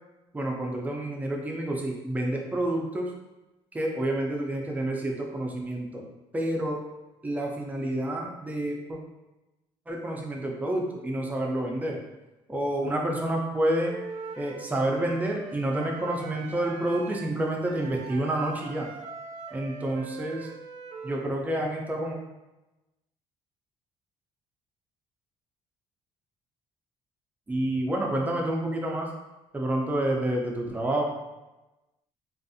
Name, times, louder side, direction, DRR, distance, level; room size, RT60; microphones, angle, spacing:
voice 1, 0.3-3.1 3.7-6.0 6.3-6.8 7.2-9.0 9.9-12.0 12.5-13.9 14.4-18.9 19.5-20.5 21.0-22.2 27.5-29.1 29.5-31.0, right 1 dB, 15° right, 0 dB, 0.4 m, -29 dB
Wind instrument woodwind instrument, 13.8-21.3, right 5 dB, 85° right, 0.4 m, -42 dB
2.5 x 2.4 x 2.5 m, 1.0 s
cardioid pair, 120°, 11 cm